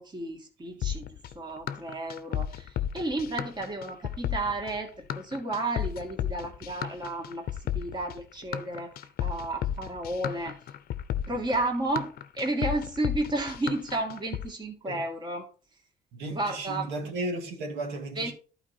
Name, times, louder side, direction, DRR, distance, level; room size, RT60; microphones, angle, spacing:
voice 1, 0.0-8.9 9.2-10.5 11.3-15.5 16.3-16.9 18.2-18.3, right 2 dB, 25° right, 2.4 m, -32 dB
sound 1, 0.8-14.5, left 10 dB, 65° left, 0.8 m, -33 dB
voice 2, 16.1-18.3, right 2 dB, 85° right, 2.2 m, -34 dB
11.5 x 4.7 x 4.4 m
cardioid pair, 110°, 17 cm